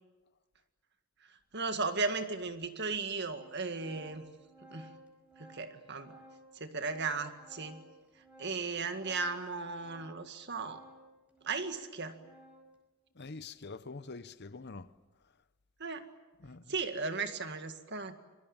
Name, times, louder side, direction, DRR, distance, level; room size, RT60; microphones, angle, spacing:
voice 1, 1.3-4.3 4.7-5.0 5.4-6.2 6.5-7.8 8.4-10.8 11.4-12.2 15.8-16.0 16.7-18.2, right 4 dB, 50° right, 1.9 m, -36 dB
Organ, 1.5-1.6 2.5-2.6 2.9-12.8, equal, 5° right, 5.0 m, -57 dB
voice 2, 13.1-14.9 16.4-16.7, left 3 dB, 50° left, 0.9 m, -45 dB
26.5 x 23.5 x 8.9 m
head